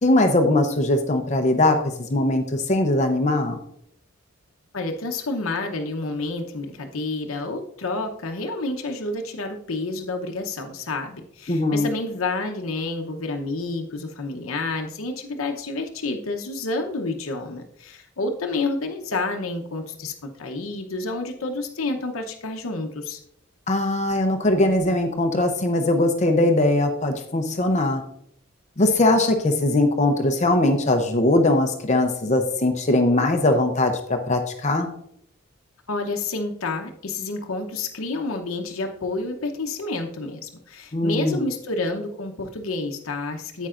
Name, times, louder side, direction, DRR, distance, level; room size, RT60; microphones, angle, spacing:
voice 1, 0.0-1.8 2.1-3.6 11.5-11.9 23.7-28.0 28.8-34.9 40.9-41.4, left 2 dB, 35° left, 5 dB, 0.7 m, -20 dB
voice 2, 4.7-23.2 35.9-43.7, left 3 dB, 75° left, 4 dB, 0.9 m, -29 dB
10.0 x 8.2 x 2.5 m, 0.72 s
head